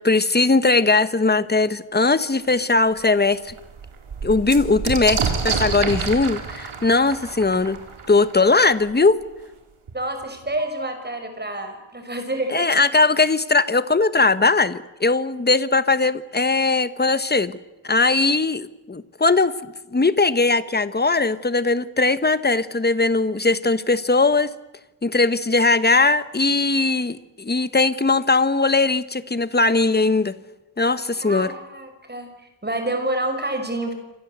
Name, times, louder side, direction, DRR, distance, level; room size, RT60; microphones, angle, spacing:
voice 1, 0.0-3.5 4.2-7.8 8.1-9.2 12.5-17.5 17.8-24.5 25.0-30.4 30.8-31.5, left 3 dB, 20° left, 14 dB, 1.2 m, -19 dB
sound 1, 2.4-2.5 3.0-3.1 3.4-8.9 9.9-10.0 10.2-10.8, right 5 dB, 80° right, 4.1 m, -29 dB
voice 2, 9.9-12.8 31.2-33.9, right 1 dB, 20° right, 6 dB, 5.9 m, -28 dB
28.0 x 25.0 x 8.2 m, 1.0 s
wide cardioid pair, 135°, 49 cm